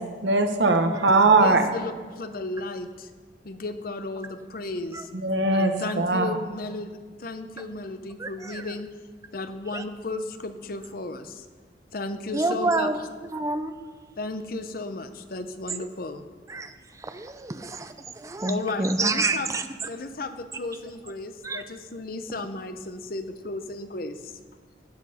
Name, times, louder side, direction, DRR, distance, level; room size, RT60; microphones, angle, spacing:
voice 1, 0.2-1.6 5.1-6.2, right 3 dB, 75° right, 6 dB, 1.0 m, -20 dB
voice 2, 1.4-3.1 3.4-5.1 5.5-8.9 9.3-11.4 11.9-12.9 14.2-16.2 18.4-19.6 19.8-24.3, left 2 dB, 55° left, 9 dB, 0.7 m, -34 dB
voice 3, 8.2-8.6 9.7-9.8 12.3-13.0 13.3-13.7 15.7-15.8 16.5-16.7 17.0-19.6 21.4-21.6, right 3 dB, 20° right, 9 dB, 0.5 m, -28 dB
12.5 x 8.6 x 4.2 m, 1.5 s
head